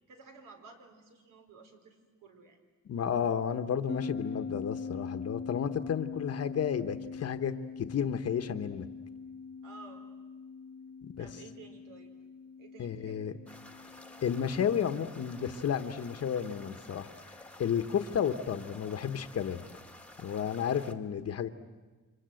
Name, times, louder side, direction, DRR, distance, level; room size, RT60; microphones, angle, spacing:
voice 1, 0.1-2.6 9.6-10.1 11.2-12.1 12.6-13.4, right 4 dB, 80° right, 4 dB, 4.3 m, -53 dB
voice 2, 2.9-8.9 11.2-11.3 12.8-13.3 14.2-17.1 17.6-19.6 20.2-21.5, left 8 dB, 50° left, 9 dB, 1.2 m, -32 dB
sound 1, 3.9-16.7, left 5 dB, 35° left, 0.9 m, -43 dB
sound 2, 13.5-20.9, left 1 dB, 5° left, 1.5 m, -52 dB
29.0 x 25.5 x 7.8 m, 1.3 s
cardioid pair, 140°, 32 cm